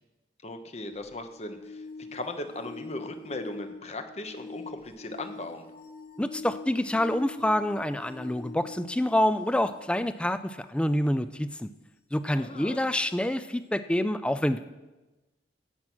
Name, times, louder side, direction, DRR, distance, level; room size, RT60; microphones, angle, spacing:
voice 1, 0.4-1.8 2.1-5.7 12.3-12.8, left 2 dB, 35° left, 7 dB, 1.0 m, -38 dB
sound 1, 0.9-10.7 13.0-13.1, left 3 dB, 55° left, 1.3 m, -44 dB
voice 2, 6.2-11.7 12.1-14.6, left 1 dB, 5° left, 12 dB, 0.4 m, -27 dB
16.0 x 5.9 x 6.2 m, 1.1 s
head